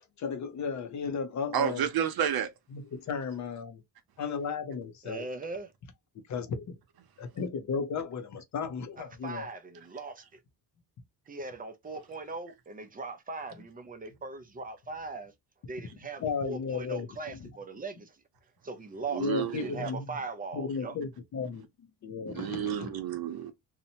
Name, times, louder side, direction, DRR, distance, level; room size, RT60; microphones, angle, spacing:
voice 1, 0.0-1.9 2.7-3.8 4.2-5.3 6.3-6.8 7.2-9.5 16.2-17.1 17.4-17.5 19.2-20.0 20.5-21.7 22.0-23.0, left 5 dB, 45° left, 0.6 m, -34 dB
voice 2, 1.5-2.5 19.1-19.7 22.3-23.5, right 9 dB, 65° right, 0.7 m, -30 dB
voice 3, 5.0-5.7 9.0-10.2 11.3-15.3 15.7-18.1 18.6-19.3 19.5-21.0, right 4 dB, 25° right, 0.4 m, -39 dB
2.7 x 2.1 x 2.7 m
cardioid pair, 140°, 40 cm